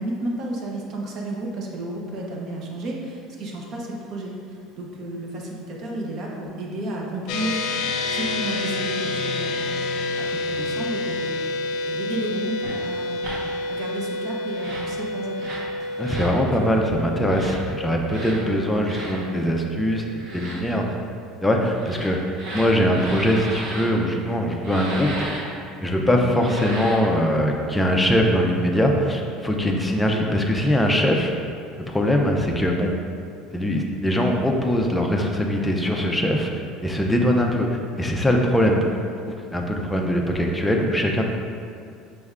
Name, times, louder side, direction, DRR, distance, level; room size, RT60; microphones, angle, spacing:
voice 1, 0.0-7.6 8.1-9.9 10.2-11.3 11.8-12.6 12.8-13.2 13.7-15.5 15.8-16.9, right 1 dB, 45° right, -1 dB, 0.7 m, -32 dB
sound 1, 7.3-20.9, left 2 dB, 70° left, 0.4 m, -29 dB
sound 2, 12.6-12.8 13.2-13.4 14.5-14.9 15.3-15.7 16.0-16.3 17.2-17.6 18.1-18.4 18.8-19.2 20.1-20.6 21.7-23.9 24.6-25.4 26.3-27.1, right 1 dB, 65° right, 1.0 m, -34 dB
voice 2, 16.0-20.0 20.3-20.8 21.4-25.3 25.8-31.3 31.8-32.9 33.5-36.5 36.8-37.7 38.0-38.8 39.3-41.2, equal, 5° left, 1 dB, 0.4 m, -22 dB
5.2 x 3.3 x 2.4 m, 2.4 s
cardioid pair, 145°, 0 cm